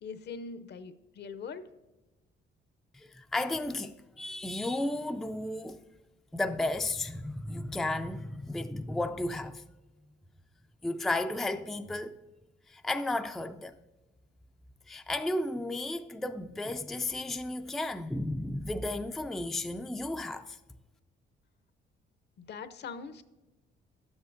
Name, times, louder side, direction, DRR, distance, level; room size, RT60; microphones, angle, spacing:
voice 1, 0.0-1.7 22.5-23.2, left 5 dB, 60° left, 0.6 m, -42 dB
voice 2, 3.0-5.8 6.3-9.6 10.8-12.2 12.7-13.7 14.9-20.6, left 2 dB, ahead, 0.3 m, -33 dB
11.5 x 8.0 x 2.6 m
cardioid pair, 90°, 20 cm